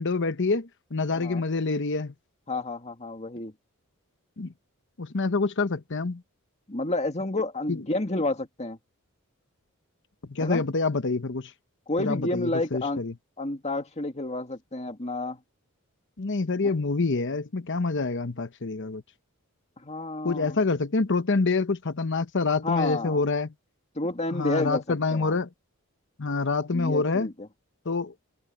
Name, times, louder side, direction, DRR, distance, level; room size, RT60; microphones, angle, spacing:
voice 1, 0.0-2.1 4.4-4.5 5.0-6.2 7.7-7.8 10.3-11.5 12.0-13.1 16.2-19.0 20.2-23.5 24.3-25.5 26.2-27.3 27.8-28.1, left 3 dB, 55° left, 1.0 m, -26 dB
voice 2, 1.1-1.4 2.5-3.5 6.7-8.8 10.4-10.6 11.9-13.0 13.4-15.4 16.6-16.7 19.8-20.6 22.6-23.2 24.0-25.4 26.7-27.5, left 2 dB, 30° left, 2.1 m, -30 dB
head